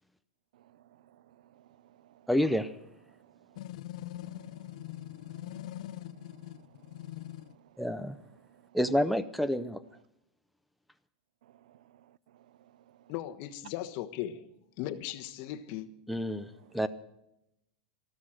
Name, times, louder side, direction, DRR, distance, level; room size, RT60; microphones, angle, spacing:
voice 1, 0.5-2.3 3.1-3.6 4.2-7.8 8.4-8.8 11.4-13.1 16.4-16.8, right 12 dB, 75° right, 0.5 m, -62 dB
voice 2, 2.3-2.7 7.8-8.2 8.7-9.8 16.1-16.9, equal, ahead, 0.6 m, -29 dB
sound 1, 3.6-7.6, left 14 dB, 65° left, 0.6 m, -42 dB
voice 3, 13.1-14.5 14.8-15.9, left 12 dB, 45° left, 1.3 m, -37 dB
13.5 x 13.5 x 6.4 m
supercardioid pair, 160°, 4 cm